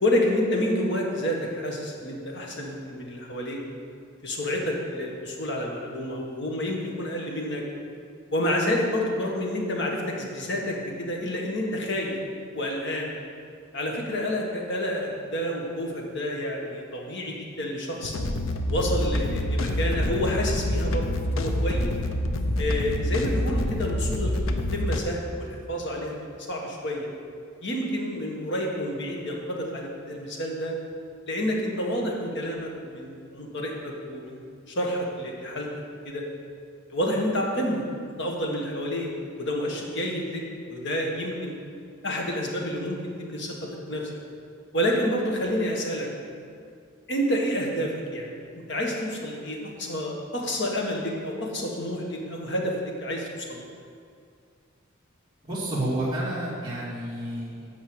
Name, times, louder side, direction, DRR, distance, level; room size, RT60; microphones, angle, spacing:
voice 1, 0.0-3.6 4.2-7.6 8.3-12.2 12.5-13.1 13.7-18.2 18.7-21.9 22.6-24.3 24.7-26.2 26.5-27.1 27.6-30.7 31.3-35.7 36.1-36.2 36.9-37.9 38.2-39.1 39.4-40.4 40.7-41.5 42.0-44.1 44.7-46.1 47.1-52.8 53.0-53.6, equal, 60° left, -1 dB, 1.7 m, -29 dB
sound 1, 18.0-25.0, left 1 dB, 75° left, 0.8 m, -26 dB
voice 2, 55.4-57.7, right 1 dB, 20° right, -8 dB, 2.2 m, -30 dB
9.0 x 5.5 x 8.0 m, 2.3 s
head